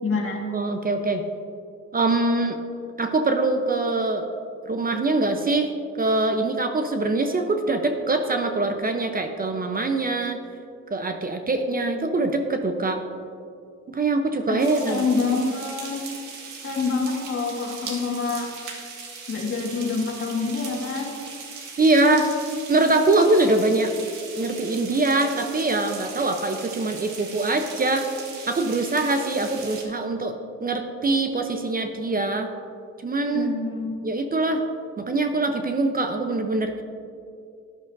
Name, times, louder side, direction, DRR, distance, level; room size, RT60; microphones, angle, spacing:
voice 1, 0.0-0.4 14.5-16.0 16.6-18.5 19.3-21.1 33.3-34.0, left 4 dB, 45° left, 0 dB, 1.9 m, -26 dB
voice 2, 0.5-1.2 1.9-2.6 3.0-4.3 4.7-5.7 6.0-10.4 10.9-13.0 13.9-15.1 21.8-22.3 22.7-23.9 24.4-28.1 28.5-32.5 33.0-33.5 34.0-34.6 35.0-36.8, right 2 dB, 30° right, 6 dB, 0.8 m, -23 dB
sound 1, 14.6-29.8, right 5 dB, 80° right, 1.7 m, -39 dB
13.5 x 11.0 x 2.6 m, 2.5 s
cardioid pair, 90°, 30 cm